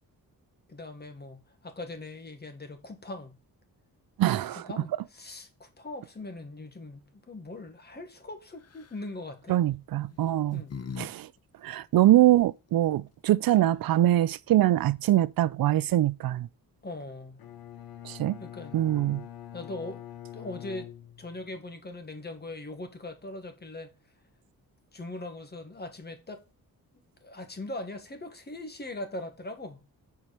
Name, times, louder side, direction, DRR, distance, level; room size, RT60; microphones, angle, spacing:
voice 1, 0.7-3.4 4.2-9.6 10.5-10.7 16.8-17.4 18.4-18.9 19.5-20.1 20.3-20.9 21.2-23.9 24.9-26.4 26.9-29.8, left 2 dB, 30° left, 1.8 m, -41 dB
voice 2, 4.2-4.6 9.5-10.6 11.0-11.3 11.6-16.5 18.0-18.4 18.7-19.2, right 14 dB, 75° right, 0.5 m, -23 dB
sound 1, 8.6-9.0 10.0-11.1 11.4-11.5 13.1-13.2 13.4-13.9, left 6 dB, 45° left, 1.0 m, -41 dB
Bowed string instrument, 17.4-21.6, left 11 dB, 90° left, 0.9 m, -44 dB
7.2 x 4.8 x 6.6 m
cardioid pair, 110°, 35 cm